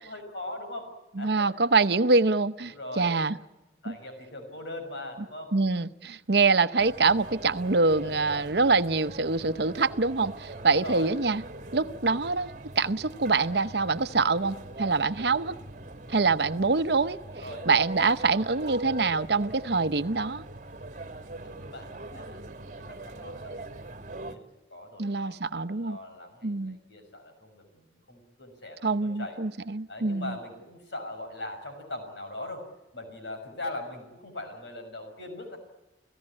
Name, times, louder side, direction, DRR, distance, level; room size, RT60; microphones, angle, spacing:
voice 1, 0.0-1.5 1.9-2.0 2.6-3.2 3.8-5.6 8.0-8.3 10.7-11.1 17.4-17.7 21.4-22.4 22.8-24.4 24.7-29.4 29.9-35.6, left 2 dB, 85° left, 5.8 m, -41 dB
voice 2, 1.2-3.4 3.9-4.0 5.5-11.4 11.7-12.5 12.8-15.5 16.1-17.2 17.7-20.4 25.0-26.0 26.4-26.8 28.8-30.3, right 3 dB, 65° right, 0.8 m, -25 dB
sound 1, 6.8-24.4, right 2 dB, 45° right, 1.4 m, -42 dB
29.5 x 16.5 x 9.8 m
head